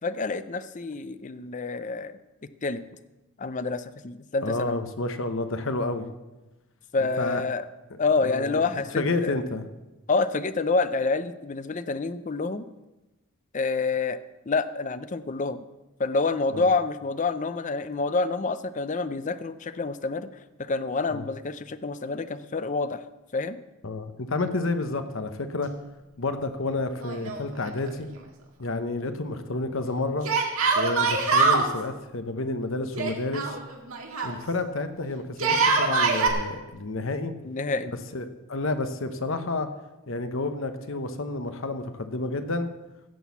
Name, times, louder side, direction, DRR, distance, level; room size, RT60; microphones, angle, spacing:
voice 1, 0.0-2.1 2.6-2.8 3.4-4.8 6.9-7.7 8.0-9.3 10.1-12.6 13.5-14.2 14.5-15.6 16.0-20.3 20.6-23.0 23.3-23.6 37.4-37.9, left 3 dB, 35° left, 12 dB, 0.5 m, -27 dB
voice 2, 4.4-6.1 7.2-7.4 8.2-8.6 9.0-9.6 16.5-16.7 21.1-21.3 23.8-25.7 26.2-28.1 28.6-30.3 30.7-33.6 34.2-37.3 38.1-39.7 40.1-42.7, left 2 dB, 60° left, 9 dB, 0.9 m, -30 dB
Yell, 27.0-27.9 28.1-28.2 30.2-31.7 32.9-34.3 35.3-36.3, right 4 dB, 70° right, 2.0 m, -23 dB
16.0 x 6.3 x 7.0 m, 1.1 s
head